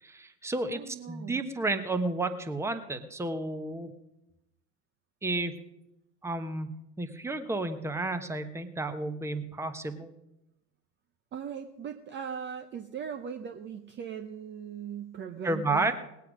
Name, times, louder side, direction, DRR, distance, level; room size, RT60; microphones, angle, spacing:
voice 1, 0.0-3.9 5.2-5.6 6.2-6.7 7.0-10.1 15.4-15.9, right 2 dB, 5° right, 8 dB, 1.1 m, -31 dB
voice 2, 0.7-1.4 11.3-15.9, right 7 dB, 25° right, 8 dB, 0.8 m, -39 dB
19.5 x 8.4 x 5.1 m, 0.88 s
hypercardioid pair, 95°, 49 cm